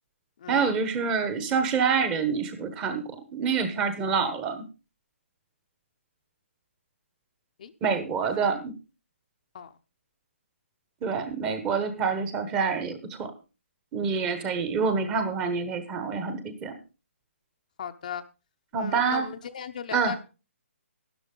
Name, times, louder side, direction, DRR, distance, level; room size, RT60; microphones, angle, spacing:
voice 1, 0.5-3.0 3.3-4.6 7.8-8.7 11.0-13.3 13.9-16.8 18.7-19.3 19.9-20.2, right 5 dB, 10° right, 1.1 m, -27 dB
voice 2, 17.8-18.2 18.8-20.2, left 8 dB, 35° left, 0.8 m, -37 dB
12.5 x 11.0 x 3.8 m
hypercardioid pair, 170°, 7 cm